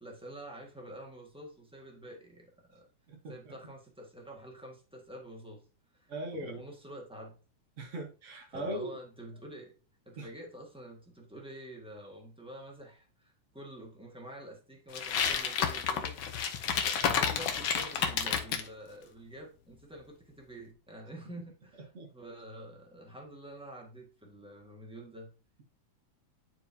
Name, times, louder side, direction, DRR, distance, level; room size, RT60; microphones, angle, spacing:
voice 1, 0.0-2.9 3.3-5.6 5.9-7.3 8.5-9.7 10.0-16.2 16.7-25.3, right 1 dB, 5° right, -1 dB, 0.7 m, -48 dB
voice 2, 3.1-3.5 6.1-6.6 7.8-8.9 10.2-10.3 21.9-22.1, right 1 dB, 80° right, 1 dB, 0.6 m, -39 dB
sound 1, 14.9-18.7, left 7 dB, 70° left, 1.2 m, -30 dB
11.0 x 4.6 x 2.8 m, 0.36 s
omnidirectional pair, 3.3 m